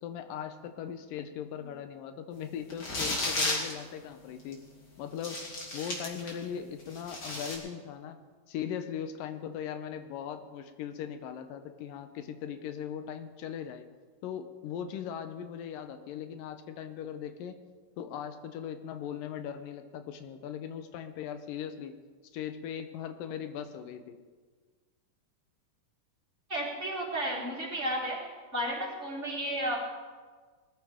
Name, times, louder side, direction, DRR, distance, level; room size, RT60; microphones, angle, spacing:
voice 1, 0.0-4.6 5.0-5.4 5.7-8.2 8.5-13.9 14.2-17.6 18.0-22.0 22.3-24.2, left 8 dB, 85° left, 8 dB, 2.6 m, -39 dB
sound 1, 2.7-3.7 4.5-4.6 5.2-6.4 6.8-7.5, left 2 dB, 35° left, 2.9 m, -33 dB
voice 2, 26.5-28.2 28.5-29.8, right 1 dB, 20° right, -7 dB, 4.2 m, -33 dB
20.5 x 13.5 x 3.6 m, 1.5 s
omnidirectional pair, 3.8 m